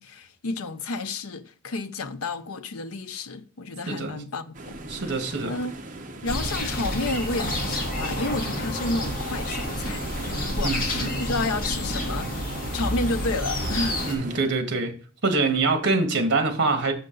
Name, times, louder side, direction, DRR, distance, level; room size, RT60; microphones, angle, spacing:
voice 1, 0.0-4.7 5.1-5.7 6.2-12.4 12.7-14.1, left 2 dB, 80° left, 0.7 m, -31 dB
voice 2, 3.9-4.2 4.9-5.6 10.6-11.1 14.0-14.9 15.2-16.9, right 3 dB, 50° right, 1.6 m, -24 dB
sound 1, 4.5-14.4, right 2 dB, 35° right, 0.9 m, -39 dB
sound 2, 6.3-14.2, left 1 dB, 40° left, 1.6 m, -29 dB
6.6 x 6.6 x 3.9 m
head